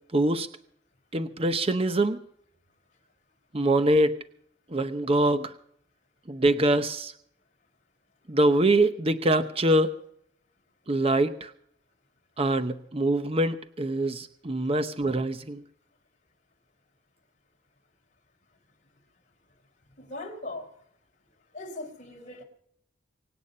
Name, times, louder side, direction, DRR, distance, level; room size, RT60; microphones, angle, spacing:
voice 1, 0.1-0.5 1.1-2.2 3.5-4.1 4.7-5.5 6.3-7.1 8.3-9.9 10.9-11.5 12.4-15.6, right 1 dB, 30° right, 10 dB, 0.8 m, -24 dB
voice 2, 20.0-20.7 21.5-22.4, left 2 dB, 40° left, 0 dB, 4.3 m, -39 dB
24.5 x 9.1 x 5.4 m, 0.67 s
head